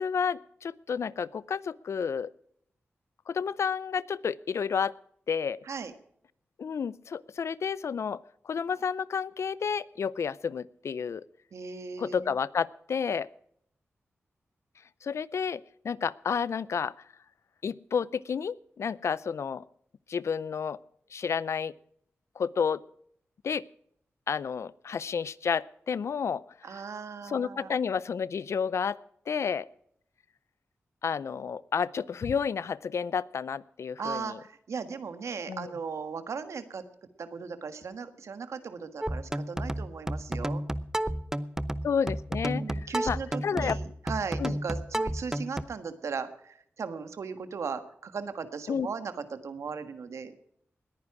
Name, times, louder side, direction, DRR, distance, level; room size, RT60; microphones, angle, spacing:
voice 1, 0.0-2.3 3.3-4.9 5.3-5.6 6.6-11.2 12.0-13.3 15.0-16.9 17.6-19.6 20.1-20.8 21.1-21.7 22.4-22.8 23.4-23.6 24.3-26.4 27.2-29.0 29.3-29.7 31.0-34.4 35.5-35.7 41.8-43.8 44.4-44.5 48.7-48.9, left 6 dB, 70° left, 20 dB, 0.5 m, -31 dB
voice 2, 11.5-12.4 26.6-27.7 34.0-36.8 37.2-40.6 42.4-50.3, right 5 dB, 80° right, 10 dB, 1.5 m, -37 dB
sound 1, 39.0-45.6, right 1 dB, 10° right, 0.7 m, -32 dB
20.0 x 9.8 x 4.8 m, 0.70 s
cardioid pair, 65°, 5 cm